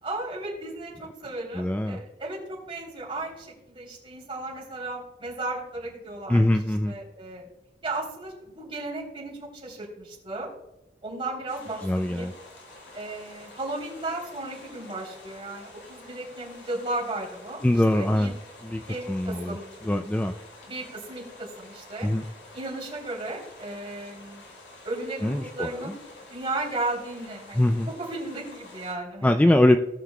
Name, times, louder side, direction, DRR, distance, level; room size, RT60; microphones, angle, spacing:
voice 1, 0.0-6.5 6.8-7.5 7.8-10.5 11.0-12.3 12.9-17.6 17.9-18.3 18.9-19.7 20.7-22.1 22.5-24.4 24.8-26.0 26.3-29.4, right 2 dB, 30° right, -4 dB, 3.5 m, -35 dB
voice 2, 1.6-2.0 6.3-6.9 11.8-12.3 17.6-18.3 18.6-18.8 19.1-19.6 19.8-20.3 22.0-22.2 25.2-25.9 27.6-27.9 29.2-29.8, left 1 dB, 10° left, 6 dB, 0.3 m, -22 dB
sound 1, 11.5-28.9, left 2 dB, 75° left, 2.4 m, -48 dB
18.5 x 6.5 x 2.3 m, 0.92 s
head